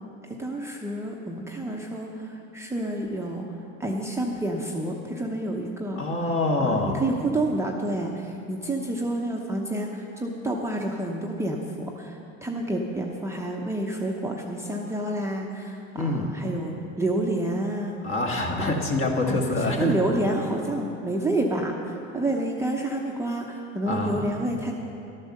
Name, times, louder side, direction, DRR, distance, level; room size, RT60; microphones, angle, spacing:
voice 1, 0.3-3.4 3.8-6.0 6.6-18.0 18.6-18.7 19.2-24.7, right 1 dB, 10° right, -1 dB, 0.8 m, -29 dB
voice 2, 6.0-6.9 16.0-16.3 18.0-19.9 23.9-24.3, left 2 dB, 35° left, 1 dB, 1.8 m, -25 dB
12.5 x 8.6 x 6.5 m, 2.7 s
supercardioid pair, 120°, 35 cm